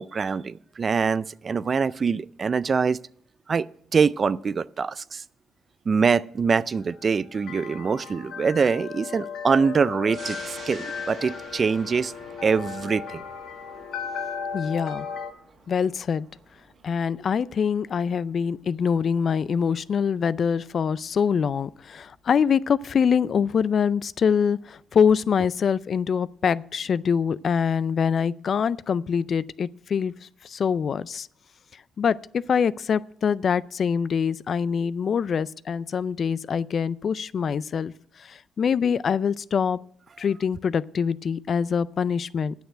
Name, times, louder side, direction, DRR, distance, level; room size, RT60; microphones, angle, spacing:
voice 1, 0.0-3.0 3.5-5.2 5.9-12.1 12.4-13.2, right 5 dB, 40° right, 0.4 m, -24 dB
sound 1, 6.7-15.3, left 6 dB, 70° left, 1.2 m, -36 dB
sound 2, 10.1-21.1 21.5-21.6, right 5 dB, 60° right, 1.6 m, -49 dB
voice 2, 14.5-15.1 15.7-16.3 16.8-30.1 30.4-31.3 32.0-37.9 38.2-39.8 40.2-42.5, left 6 dB, 50° left, 0.3 m, -24 dB
9.3 x 6.7 x 8.9 m
cardioid pair, 90°, 0 cm